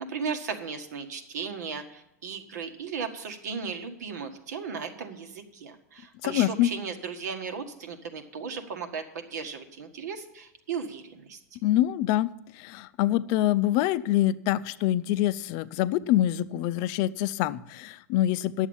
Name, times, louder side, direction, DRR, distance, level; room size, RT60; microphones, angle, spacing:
voice 1, 0.0-11.4, right 5 dB, 90° right, 6 dB, 1.7 m, -36 dB
voice 2, 6.2-6.7 11.6-18.7, left 14 dB, 40° left, 15 dB, 0.5 m, -25 dB
11.0 x 7.2 x 7.1 m, 0.85 s
supercardioid pair, 150°, 9 cm